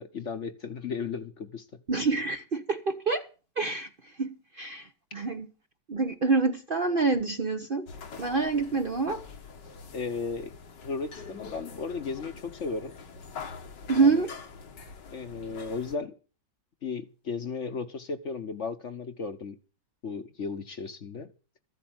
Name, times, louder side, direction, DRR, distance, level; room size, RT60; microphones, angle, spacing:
voice 1, 0.0-1.7 9.9-10.5 10.8-12.9 14.0-14.2 15.1-16.1 16.8-19.6 20.0-21.3, left 5 dB, 50° left, 1.2 m, -35 dB
voice 2, 1.9-3.3 3.6-3.9 4.2-5.5 5.9-7.9 8.2-9.2 13.9-14.3, right 4 dB, 40° right, 0.9 m, -26 dB
sound 1, 7.9-16.0, left 5 dB, 85° left, 2.2 m, -44 dB
14.0 x 8.0 x 7.9 m
omnidirectional pair, 1.8 m